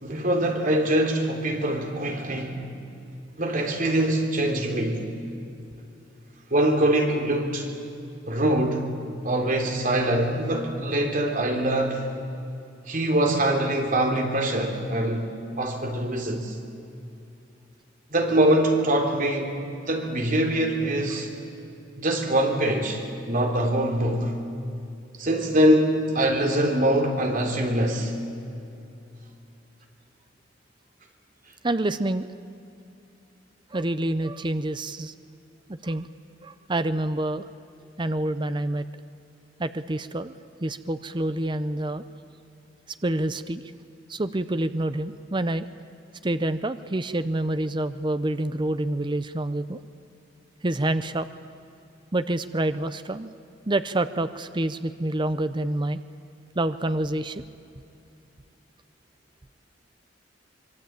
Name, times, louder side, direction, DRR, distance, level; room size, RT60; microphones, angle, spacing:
voice 1, 0.0-2.6 3.4-5.1 6.5-7.7 8.3-8.9 9.2-12.0 12.9-16.5 18.1-19.6 19.9-21.3 22.0-23.0 23.3-24.3 25.2-28.1, right 1 dB, 45° right, 3 dB, 3.4 m, -23 dB
voice 2, 31.6-32.3 33.7-35.1 35.7-36.1 36.4-37.5 38.0-38.8 39.6-40.3 40.6-42.0 43.0-43.6 44.1-45.7 46.2-49.8 50.6-51.3 52.1-53.3 53.7-56.0 56.6-57.4, right 1 dB, 25° right, 12 dB, 0.7 m, -27 dB
25.0 x 23.0 x 8.9 m, 2.7 s
head